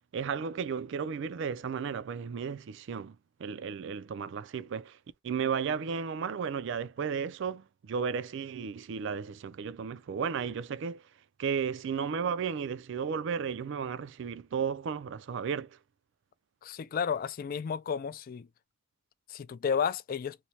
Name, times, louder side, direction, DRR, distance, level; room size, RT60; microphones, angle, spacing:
voice 1, 0.1-5.0 5.2-11.0 11.4-15.7, right 6 dB, 65° right, 0.4 m, -34 dB
voice 2, 16.6-18.5 19.3-20.4, left 7 dB, 45° left, 0.3 m, -32 dB
3.1 x 2.1 x 2.7 m
head